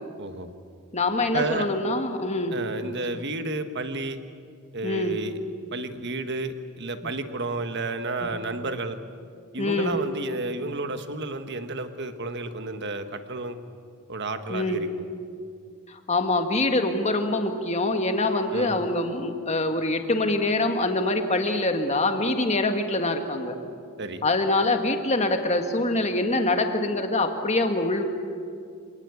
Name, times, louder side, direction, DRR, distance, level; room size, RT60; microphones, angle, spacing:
voice 1, 0.2-0.5 1.3-1.7 2.5-4.2 4.7-5.4 5.7-9.0 9.5-13.6 14.1-15.1 18.5-18.8 24.0-24.2, right 2 dB, 50° right, 8 dB, 1.4 m, -31 dB
voice 2, 0.9-2.6 4.8-5.2 8.2-8.3 9.6-10.0 14.5-14.8 15.9-23.6 24.2-28.0, left 2 dB, 30° left, 5 dB, 1.8 m, -24 dB
26.5 x 19.0 x 8.4 m, 2.3 s
head